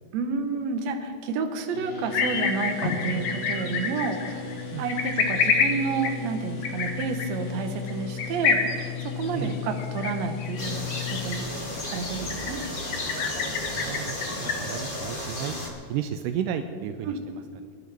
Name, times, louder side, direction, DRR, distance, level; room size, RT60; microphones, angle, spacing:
voice 1, 0.1-4.3 4.8-8.6 9.0-11.5 11.9-12.6 17.0-17.2, right 4 dB, 65° right, 5 dB, 2.0 m, -30 dB
sound 1, 1.7-11.2, left 6 dB, 85° left, 4.2 m, -36 dB
sound 2, 2.1-14.8, left 5 dB, 65° left, 2.1 m, -29 dB
sound 3, 10.6-15.7, left 1 dB, 35° left, 0.8 m, -34 dB
voice 2, 13.7-15.5 15.9-17.4, right 9 dB, 80° right, 8 dB, 2.1 m, -33 dB
22.5 x 11.5 x 3.5 m, 2.1 s
omnidirectional pair, 3.9 m